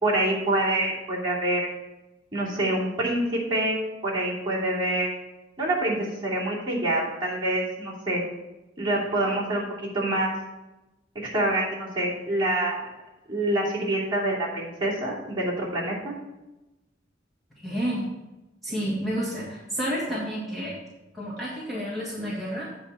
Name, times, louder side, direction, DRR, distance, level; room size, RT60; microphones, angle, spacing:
voice 1, 0.0-1.7 2.3-5.1 5.6-8.2 8.8-9.6 9.9-10.3 11.1-12.8 13.3-16.2, right 1 dB, 25° right, -7 dB, 2.8 m, -26 dB
voice 2, 17.6-18.1 18.6-20.8 21.1-22.7, equal, ahead, -8 dB, 1.7 m, -30 dB
8.3 x 5.1 x 7.0 m, 1.0 s
head